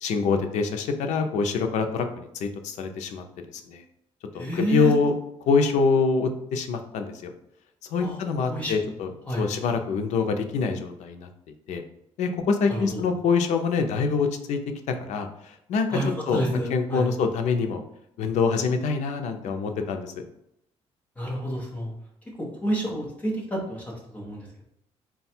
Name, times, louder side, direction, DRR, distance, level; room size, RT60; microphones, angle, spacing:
voice 1, 0.0-3.2 3.5-3.8 4.3-5.1 5.5-7.3 7.9-9.1 9.4-11.3 11.7-11.8 12.2-14.6 14.9-16.0 16.3-16.4 16.7-17.8 18.2-20.1, left 5 dB, 90° left, 5 dB, 0.5 m, -25 dB
voice 2, 4.3-4.9 8.0-8.1 8.5-8.7 9.3-9.4 12.7-13.0 15.9-17.1 21.2-21.9 22.4-24.6, right 1 dB, 10° left, -2 dB, 0.8 m, -29 dB
3.8 x 2.3 x 4.3 m, 0.79 s
cardioid pair, 170°, 12 cm